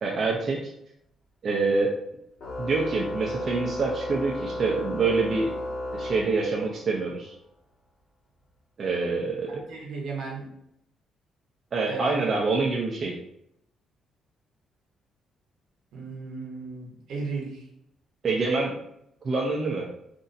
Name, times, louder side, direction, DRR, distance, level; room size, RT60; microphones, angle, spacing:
voice 1, 0.0-0.6 1.4-2.0 2.6-5.5 5.9-7.3 8.8-9.5 11.7-13.1 18.2-18.7 19.2-19.9, right 3 dB, 50° right, -2 dB, 0.6 m, -26 dB
Organ, 2.4-6.9, left 1 dB, 65° left, 1.2 m, -34 dB
voice 2, 9.5-10.4 11.9-12.4 15.9-17.6, right 4 dB, 75° right, -1 dB, 1.0 m, -35 dB
4.0 x 2.7 x 2.6 m, 0.76 s
cardioid pair, 90°, 0 cm